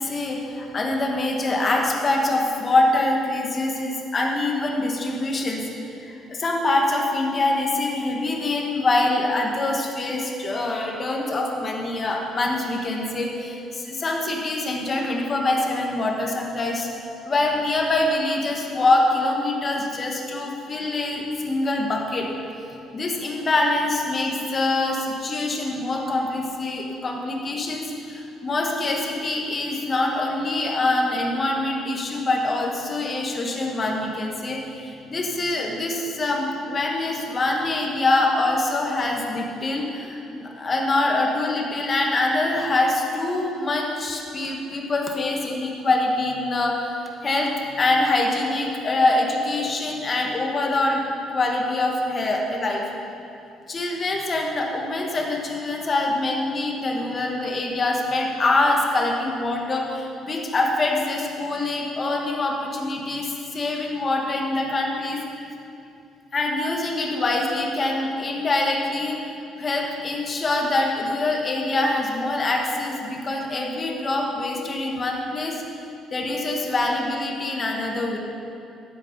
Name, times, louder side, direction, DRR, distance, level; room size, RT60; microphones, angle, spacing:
voice 1, 0.0-5.7 6.0-16.9 17.2-22.3 22.9-46.9 47.2-47.5 47.8-52.9 53.7-65.2 66.3-69.2 69.6-75.6 76.1-78.2, left 2 dB, 30° left, 0 dB, 1.6 m, -24 dB
12.0 x 8.5 x 5.5 m, 2.7 s
cardioid pair, 130°, 0 cm